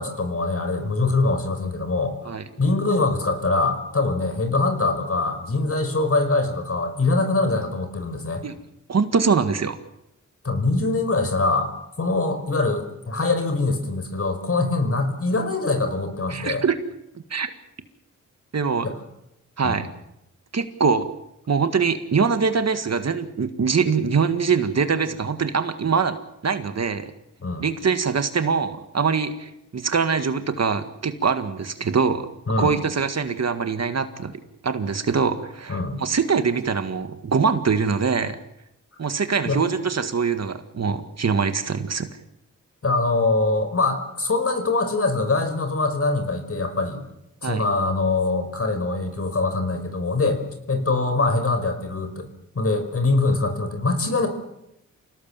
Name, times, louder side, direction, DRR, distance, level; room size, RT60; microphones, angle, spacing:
voice 1, 0.0-2.2 2.6-8.4 10.4-11.7 12.0-16.6 18.8-18.9 19.6-19.8 27.4-27.7 32.5-32.7 35.7-36.0 39.4-39.6 42.8-47.0 47.4-50.4 50.7-52.3 52.6-54.3, left 3 dB, 45° left, 7 dB, 5.3 m, -23 dB
voice 2, 8.9-9.8 16.3-16.8 17.3-17.5 18.5-18.9 19.6-19.8 20.5-21.1 21.5-26.1 26.4-27.1 27.6-32.3 32.6-38.4 39.0-42.1 47.4-47.7, right 5 dB, 55° right, 9 dB, 1.9 m, -23 dB
27.5 x 18.0 x 7.6 m, 0.85 s
cardioid pair, 70°, 32 cm